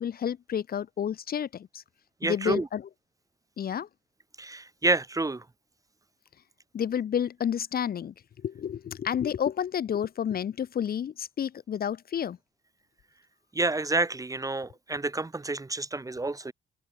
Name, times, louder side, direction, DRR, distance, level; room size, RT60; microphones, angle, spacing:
voice 1, 0.0-1.8 2.2-2.8 3.6-3.9 6.7-12.4, left 9 dB, 50° left, 0.9 m, -30 dB
voice 2, 2.2-2.7 4.4-5.4 13.5-16.5, right 2 dB, 15° right, 1.3 m, -29 dB
cardioid pair, 90°, 20 cm